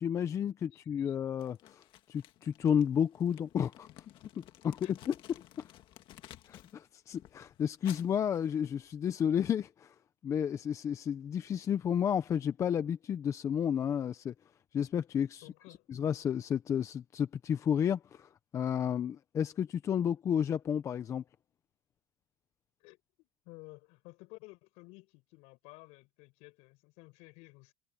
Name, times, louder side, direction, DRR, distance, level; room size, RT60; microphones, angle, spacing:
voice 1, 0.0-1.8 2.1-3.9 4.4-5.1 5.6-5.7 6.5-9.9 10.2-14.3 14.7-15.4 15.9-21.2, left 8 dB, 25° left, 0.7 m, -32 dB
voice 2, 0.7-1.2 4.8-4.9 15.4-15.9 22.8-27.7, left 26 dB, 55° left, 7.6 m, -54 dB
Crumpling crinkling, 1.4-6.8 7.1-9.1, left 13 dB, 40° left, 1.8 m, -55 dB
supercardioid pair, 155°, 13 cm